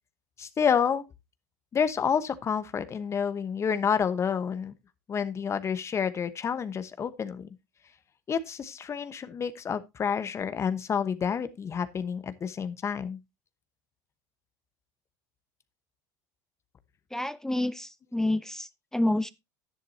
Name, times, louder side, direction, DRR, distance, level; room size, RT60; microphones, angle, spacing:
voice 1, 0.4-1.0 1.7-4.7 5.1-7.5 8.3-13.2, left 7 dB, 30° left, 1.1 m, -29 dB
voice 2, 17.1-19.3, left 1 dB, 5° left, 0.5 m, -29 dB
11.0 x 10.5 x 2.7 m
supercardioid pair, 110°, 9 cm